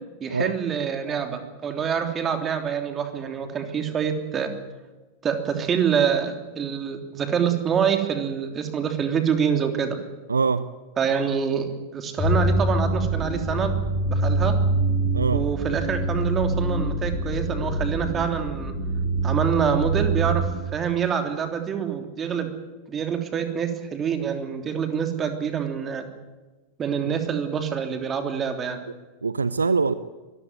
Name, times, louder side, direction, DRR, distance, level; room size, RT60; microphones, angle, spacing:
voice 1, 0.2-4.5 5.2-10.0 11.0-13.7 14.1-14.5 15.3-18.7 19.2-20.4 20.7-22.5 22.9-26.1 26.8-28.8, right 7 dB, 25° right, 6 dB, 3.2 m, -26 dB
voice 2, 10.3-10.7 15.1-15.4 27.0-27.1 29.2-29.9, right 4 dB, 75° right, 16 dB, 0.7 m, -23 dB
sound 1, 12.2-20.5, right 2 dB, 20° left, 7.4 m, -25 dB
23.5 x 15.0 x 9.3 m, 1.2 s
figure-of-eight pair, 90°, 0 cm